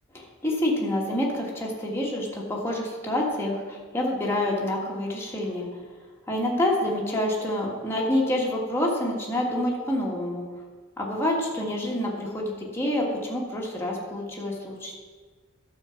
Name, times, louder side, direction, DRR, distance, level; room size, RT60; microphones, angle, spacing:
voice 1, 0.1-5.7 6.3-10.4 11.0-15.0, left 1 dB, 10° left, -3 dB, 1.7 m, -27 dB
12.5 x 4.5 x 7.0 m, 1.5 s
head